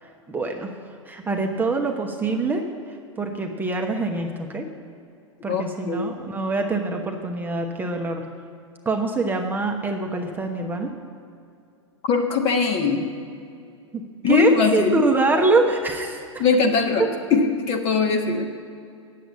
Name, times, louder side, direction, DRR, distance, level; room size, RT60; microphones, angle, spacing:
voice 1, 0.0-0.7 1.0-4.7 5.4-8.3 8.8-10.9 13.9-16.4 16.8-17.1, right 2 dB, 10° right, 2 dB, 0.9 m, -24 dB
voice 2, 5.5-6.0 12.0-13.1 14.2-15.0 16.4-17.0 17.3-18.4, left 5 dB, 35° left, 4 dB, 1.3 m, -21 dB
9.2 x 7.5 x 8.5 m, 2.4 s
figure-of-eight pair, 95°, 16 cm